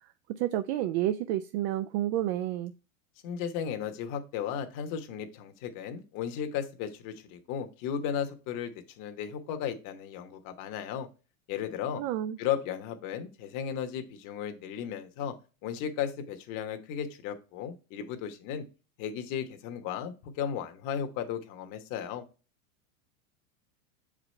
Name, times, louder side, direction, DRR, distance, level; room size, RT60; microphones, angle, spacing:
voice 1, 0.0-2.7 12.0-12.4, right 13 dB, 50° right, 0.5 m, -30 dB
voice 2, 3.2-8.7 9.0-11.1 11.5-12.0 12.4-15.3 15.6-18.6 19.0-22.2, left 8 dB, 45° left, 1.2 m, -35 dB
6.7 x 5.0 x 3.2 m
hypercardioid pair, 120°, 42 cm